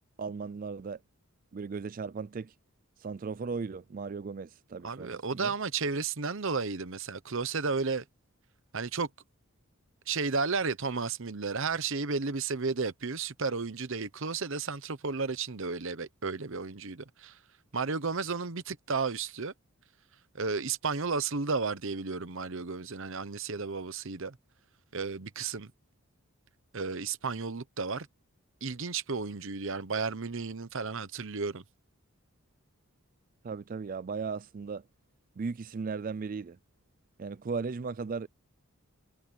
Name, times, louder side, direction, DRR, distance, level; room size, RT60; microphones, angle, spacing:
voice 1, 0.2-1.0 1.5-2.5 3.0-5.5 33.4-34.9 35.4-36.6 37.2-38.3, right 5 dB, 40° right, 0.4 m, -36 dB
voice 2, 4.8-8.0 8.7-9.1 10.1-17.4 17.7-19.5 20.3-24.4 24.9-25.7 26.7-28.1 28.6-31.6, right 4 dB, 60° right, 1.0 m, -33 dB
head